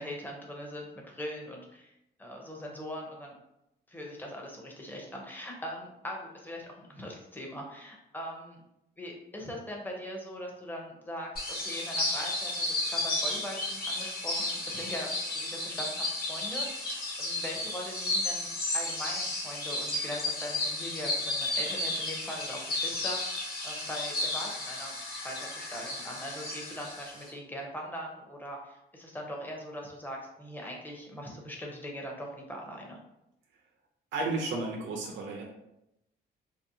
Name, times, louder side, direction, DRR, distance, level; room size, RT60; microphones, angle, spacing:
voice 1, 0.0-3.3 3.9-8.6 9.0-18.5 18.7-25.0 25.2-33.0, equal, 10° left, -1 dB, 0.6 m, -41 dB
sound 1, 11.4-27.3, left 2 dB, 50° left, 0.8 m, -33 dB
voice 2, 34.1-35.4, right 3 dB, 70° right, 0 dB, 0.5 m, -32 dB
2.6 x 2.0 x 2.6 m, 0.85 s
cardioid pair, 90°, 20 cm